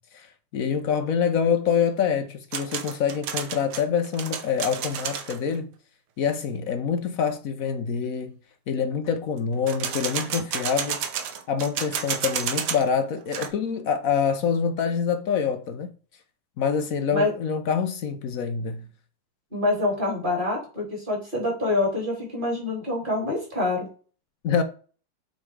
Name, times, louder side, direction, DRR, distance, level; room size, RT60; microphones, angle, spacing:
voice 1, 0.1-5.7 6.2-8.3 8.7-11.0 11.5-15.9 16.6-18.9 24.4-24.6, left 6 dB, 65° left, 0.8 m, -26 dB
sound 1, 2.5-5.4 9.7-12.9 13.2-13.5, right 8 dB, 80° right, 1.8 m, -31 dB
voice 2, 19.5-23.9, left 2 dB, 20° right, 3.8 m, -26 dB
8.0 x 4.0 x 4.8 m
omnidirectional pair, 2.4 m